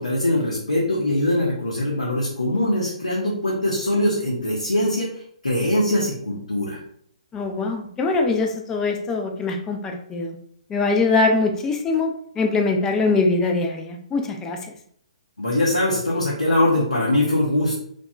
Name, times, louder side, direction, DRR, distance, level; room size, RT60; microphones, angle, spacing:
voice 1, 0.0-5.1 5.4-6.8 15.4-17.8, left 1 dB, 90° left, -5 dB, 0.7 m, -22 dB
voice 2, 7.3-10.4 10.7-12.1 12.4-14.6, left 3 dB, 15° left, 3 dB, 0.3 m, -22 dB
2.8 x 2.2 x 2.3 m, 0.64 s
figure-of-eight pair, 130°, 4 cm